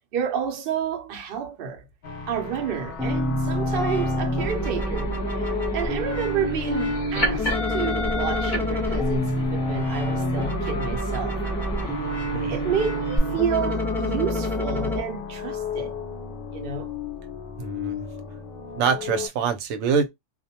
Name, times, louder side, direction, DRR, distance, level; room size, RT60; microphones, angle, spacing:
voice 1, 0.1-1.8 2.3-11.4 11.8-12.0 12.4-16.0 16.5-16.9, right 7 dB, 55° right, 0.7 m, -30 dB
sound 1, 2.0-19.3, left 6 dB, 60° left, 0.6 m, -35 dB
sound 2, 3.0-15.0, equal, 5° left, 0.3 m, -27 dB
sound 3, 4.5-13.2, equal, 40° left, 1.0 m, -33 dB
voice 2, 17.6-18.1 18.8-20.1, right 6 dB, 85° right, 1.0 m, -25 dB
2.4 x 2.1 x 2.7 m
omnidirectional pair, 1.3 m